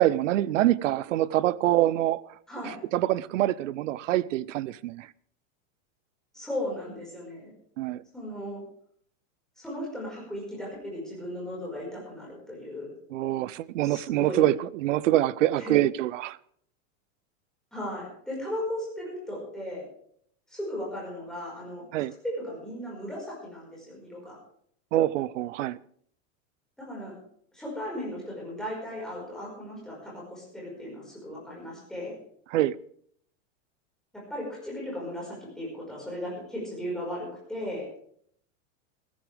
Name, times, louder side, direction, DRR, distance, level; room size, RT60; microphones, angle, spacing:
voice 1, 0.0-2.2 2.7-5.1 7.8-8.0 13.1-16.4 21.9-22.1 24.9-25.8 32.5-32.8, right 14 dB, 75° right, 0.7 m, -25 dB
voice 2, 6.3-7.5 8.1-8.6 9.6-12.9 13.8-14.5 15.6-15.8 17.7-19.8 20.5-21.8 22.2-24.4 26.8-27.2 27.5-32.2 34.1-37.9, left 1 dB, ahead, 5.0 m, -36 dB
17.0 x 14.5 x 3.5 m
supercardioid pair, 180°, 38 cm